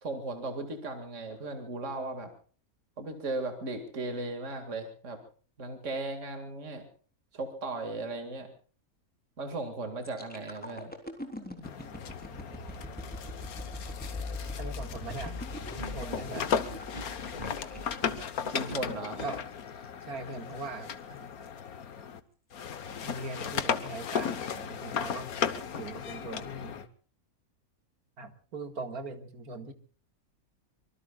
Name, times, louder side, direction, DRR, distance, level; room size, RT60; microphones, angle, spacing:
voice 1, 0.0-2.3 3.0-5.2 5.6-6.8 7.3-8.5 9.4-10.9 18.5-19.2, right 2 dB, 55° right, 6 dB, 2.5 m, -36 dB
sound 1, 10.0-19.9 20.3-20.5, left 2 dB, 5° left, 3.6 m, -42 dB
sound 2, 11.6-22.2 22.5-26.9, left 7 dB, 75° left, 1.6 m, -36 dB
voice 2, 14.6-16.5 19.2-19.4 20.1-21.3 23.0-25.3 25.7-26.8 28.2-29.7, right 3 dB, 75° right, 7 dB, 2.5 m, -41 dB
sound 3, 15.7-19.3, right 1 dB, 30° right, 3.2 m, -43 dB
25.5 x 24.0 x 2.4 m, 0.43 s
omnidirectional pair, 1.6 m